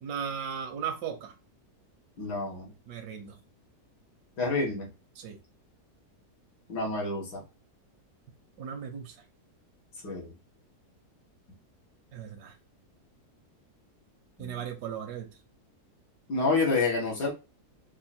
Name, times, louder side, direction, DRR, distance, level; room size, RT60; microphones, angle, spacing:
voice 1, 0.0-1.3 2.9-3.4 5.1-5.4 8.6-9.2 12.1-12.5 14.4-15.3, right 8 dB, 80° right, 1.4 m, -36 dB
voice 2, 2.2-2.7 4.4-4.9 6.7-7.4 10.0-10.3 14.4-14.6 16.3-17.3, left 3 dB, 85° left, 2.1 m, -28 dB
4.7 x 2.6 x 4.2 m
omnidirectional pair, 1.7 m